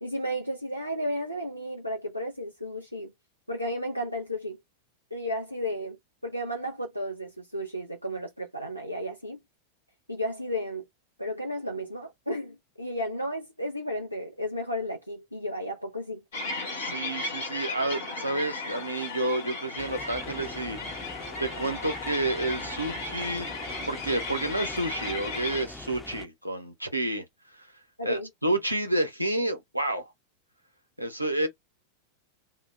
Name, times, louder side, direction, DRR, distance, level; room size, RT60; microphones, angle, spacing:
voice 1, 0.0-3.1 3.5-4.6 5.1-6.0 6.2-9.4 10.1-10.8 11.2-16.2 28.0-28.3, equal, 90° left, 0.4 m, -33 dB
sound 1, 16.3-25.6, left 3 dB, 60° left, 0.9 m, -35 dB
voice 2, 16.7-20.8 21.4-27.2 27.5-27.7 28.0-30.1 31.0-31.5, right 1 dB, 90° right, 0.6 m, -30 dB
sound 2, 19.8-26.3, left 2 dB, 10° left, 0.4 m, -44 dB
2.1 x 2.0 x 3.1 m
figure-of-eight pair, 90°, 0 cm